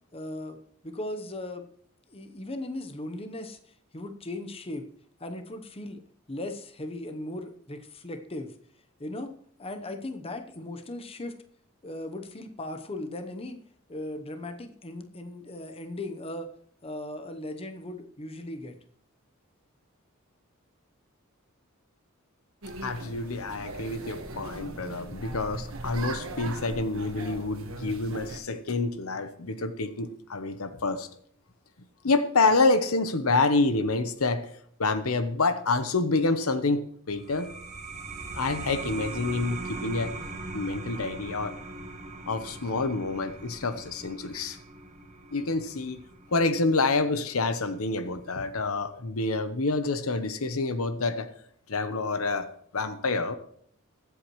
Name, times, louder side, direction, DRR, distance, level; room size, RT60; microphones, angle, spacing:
voice 1, 0.1-0.6 0.8-1.7 2.1-3.6 3.9-4.9 5.2-6.0 6.3-8.5 9.0-9.3 9.6-11.4 11.8-13.6 13.9-16.5 16.8-18.7, left 1 dB, 25° left, 6 dB, 0.9 m, -37 dB
sound 1, 22.6-28.4, right 2 dB, 65° right, 1.5 m, -39 dB
voice 2, 22.8-31.1 32.0-34.5 34.8-37.5 38.3-40.1 40.5-41.5 42.3-44.6 45.3-46.0 46.3-51.3 51.7-52.5 52.7-53.4, left 3 dB, 80° left, 10 dB, 1.0 m, -27 dB
sound 2, 37.1-48.3, right 3 dB, 35° right, 1.3 m, -41 dB
22.0 x 8.1 x 3.1 m, 0.64 s
head